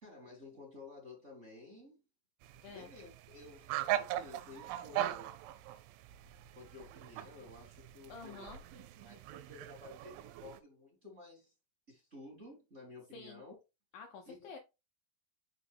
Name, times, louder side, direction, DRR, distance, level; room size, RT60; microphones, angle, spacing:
voice 1, 0.0-2.0 2.7-5.3 6.5-8.5 9.0-11.5 11.9-13.5 14.2-14.5, left 3 dB, 20° right, 2.6 m, -53 dB
sound 1, 2.4-10.6, right 13 dB, 90° right, 3.1 m, -40 dB
voice 2, 8.1-8.6 13.1-13.4 13.9-14.6, left 5 dB, 85° left, 2.0 m, -49 dB
6.2 x 6.0 x 3.6 m
omnidirectional pair, 5.5 m